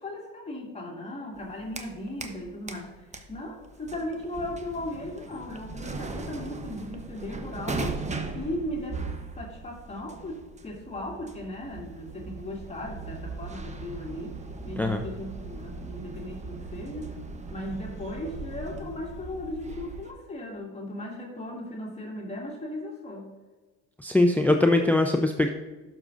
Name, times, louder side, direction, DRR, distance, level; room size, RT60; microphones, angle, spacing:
voice 1, 0.0-8.1 8.3-9.0 9.4-14.4 14.6-17.2 17.5-23.3, left 1 dB, 20° left, -2 dB, 2.3 m, -37 dB
sound 1, 1.3-2.4 2.7-20.1, right 3 dB, 25° right, 1.0 m, -39 dB
voice 2, 24.0-25.5, left 2 dB, 5° left, 5 dB, 0.5 m, -22 dB
11.5 x 6.5 x 2.5 m, 1.2 s
hypercardioid pair, 70°, 30 cm